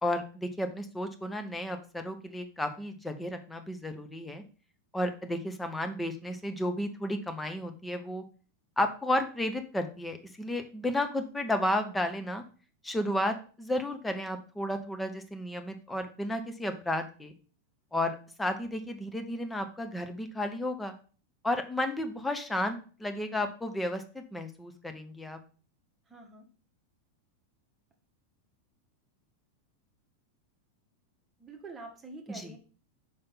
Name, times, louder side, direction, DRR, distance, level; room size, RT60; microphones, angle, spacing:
voice 1, 0.0-4.4 4.9-8.2 8.8-12.4 12.8-17.3 17.9-20.9 21.4-25.4 32.3-32.5, left 1 dB, 5° left, 6 dB, 0.8 m, -33 dB
voice 2, 26.1-26.4 31.4-32.6, right 3 dB, 15° right, 1 dB, 1.3 m, -46 dB
5.5 x 3.5 x 5.5 m, 0.38 s
figure-of-eight pair, 90°, 0 cm